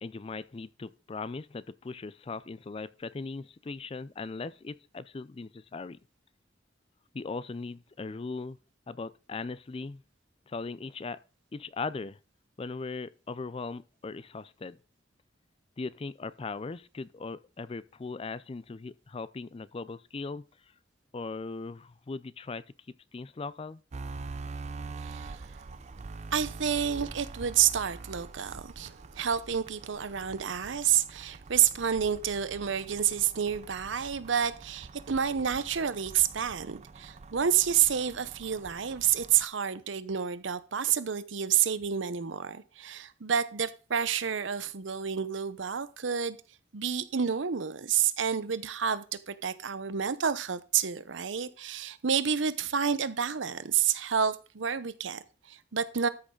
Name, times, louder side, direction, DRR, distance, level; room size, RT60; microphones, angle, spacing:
voice 1, 0.0-6.0 7.1-8.6 8.9-10.0 10.5-11.2 11.5-12.2 12.6-14.8 15.8-20.5 21.1-23.8, left 4 dB, 30° left, 0.4 m, -39 dB
sound 1, 23.9-39.4, right 3 dB, 35° right, 0.5 m, -45 dB
voice 2, 25.0-25.5 26.3-46.4 46.7-56.1, right 8 dB, 75° right, 0.7 m, -29 dB
13.0 x 6.3 x 3.8 m
head